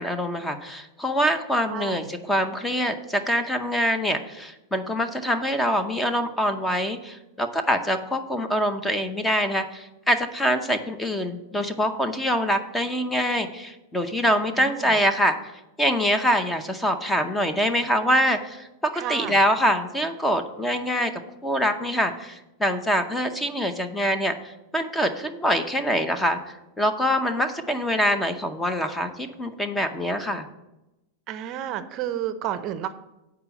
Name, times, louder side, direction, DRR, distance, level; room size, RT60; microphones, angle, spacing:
voice 1, 0.0-15.4 15.8-21.1 21.4-24.3 24.7-26.4 26.8-30.5, equal, 10° left, 8 dB, 0.7 m, -24 dB
voice 2, 1.7-2.1 14.6-15.0 18.9-19.4 31.3-32.9, right 10 dB, 40° right, 12 dB, 0.6 m, -31 dB
8.5 x 4.7 x 7.1 m, 0.94 s
supercardioid pair, 140°, 0 cm